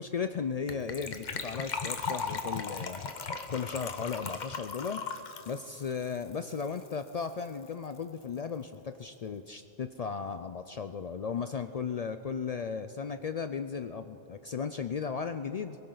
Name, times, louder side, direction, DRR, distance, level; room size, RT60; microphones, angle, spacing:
voice 1, 0.0-3.0 3.5-5.0 5.5-15.8, left 6 dB, 65° left, 9 dB, 0.3 m, -36 dB
Gurgling / Trickle dribble / Fill (with liquid), 0.7-6.9 7.2-7.3 7.4-7.7 8.0-8.1, left 5 dB, 45° left, 0.9 m, -37 dB
23.0 x 16.0 x 3.9 m, 3.0 s
omnidirectional pair, 1.2 m